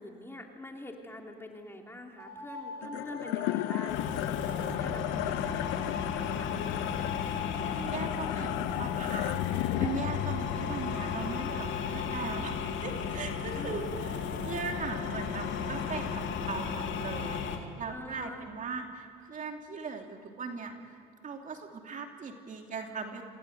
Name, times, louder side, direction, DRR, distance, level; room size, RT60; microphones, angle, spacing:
voice 1, 0.0-4.5 4.8-6.5 13.5-13.7 17.9-18.4, left 1 dB, 10° left, 2 dB, 3.2 m, -45 dB
sound 1, 2.2-4.0 4.4-4.8 5.2-6.0, left 1 dB, 75° right, 4.5 m, -44 dB
sound 2, 2.8-13.3, left 17 dB, 85° left, 0.6 m, -36 dB
sound 3, 3.9-17.6, left 6 dB, 65° left, 2.7 m, -34 dB
voice 2, 7.5-23.2, right 5 dB, 40° right, 3 dB, 2.9 m, -39 dB
27.5 x 17.5 x 8.1 m, 2.6 s
supercardioid pair, 95°, 20 cm